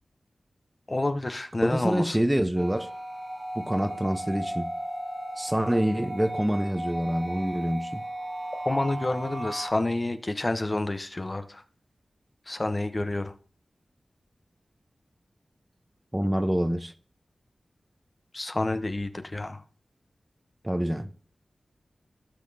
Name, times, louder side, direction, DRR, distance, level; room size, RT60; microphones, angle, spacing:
voice 1, 0.9-2.2 8.7-11.6 12.5-13.3 18.3-19.6, left 2 dB, 35° left, 0.8 m, -29 dB
voice 2, 1.6-2.9 3.5-4.7 5.4-8.0 16.1-16.9 20.6-21.1, equal, 15° right, 0.8 m, -26 dB
sound 1, 2.6-9.7, right 1 dB, 40° right, 1.4 m, -36 dB
16.0 x 5.8 x 2.7 m
cardioid pair, 45°, 0 cm